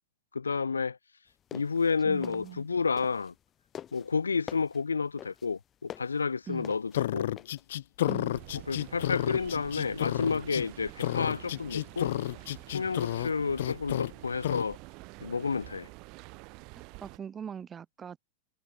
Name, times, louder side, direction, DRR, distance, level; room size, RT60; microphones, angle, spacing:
voice 1, 0.3-1.0 1.5-3.3 3.9-7.3 8.7-12.1 12.7-14.8 15.2-15.9, left 5 dB, 75° left, 2.9 m, -30 dB
sound 1, 1.3-3.4 3.7-8.4, left 10 dB, 25° left, 5.6 m, -45 dB
voice 2, 2.0-2.7 6.5-6.7 8.1-8.4 17.0-18.2, right 7 dB, 20° right, 5.0 m, -41 dB
sound 2, 6.9-10.7 11.0-13.3 13.6-14.1 14.4-14.7, left 13 dB, 60° left, 1.2 m, -31 dB
sound 3, 8.3-17.2, right 28 dB, 45° right, 6.3 m, -47 dB
figure-of-eight pair, 90°, 0 cm